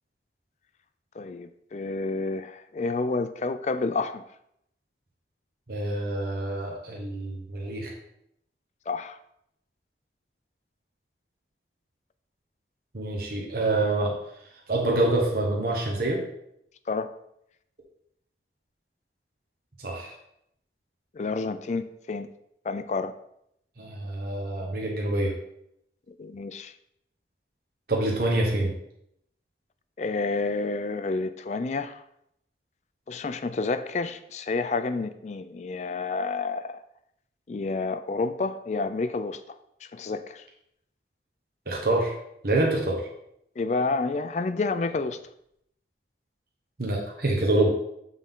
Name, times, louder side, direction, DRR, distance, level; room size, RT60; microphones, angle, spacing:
voice 1, 1.2-4.2 8.9-9.2 16.9-17.1 21.1-22.3 22.7-23.1 26.2-26.7 30.0-32.0 33.1-36.8 37.5-39.4 39.9-40.4 43.6-45.2, left 3 dB, 40° left, 0.3 m, -29 dB
voice 2, 5.7-7.9 12.9-14.1 14.7-16.2 19.8-20.1 23.8-25.3 27.9-28.7 41.7-42.1 42.4-43.1 46.8-47.7, right 2 dB, 55° right, 1.1 m, -26 dB
7.6 x 3.7 x 3.6 m
head